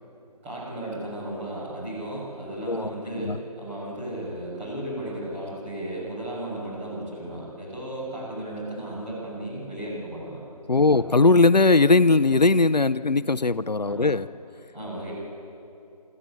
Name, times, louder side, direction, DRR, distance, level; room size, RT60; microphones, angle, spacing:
voice 1, 0.4-10.4 10.7-11.0 13.8-14.1 14.7-15.1, right 1 dB, 15° right, -9 dB, 6.6 m, -35 dB
voice 2, 10.7-14.3, left 3 dB, 85° left, 15 dB, 0.6 m, -19 dB
25.5 x 14.0 x 8.8 m, 2.8 s
figure-of-eight pair, 155°, 21 cm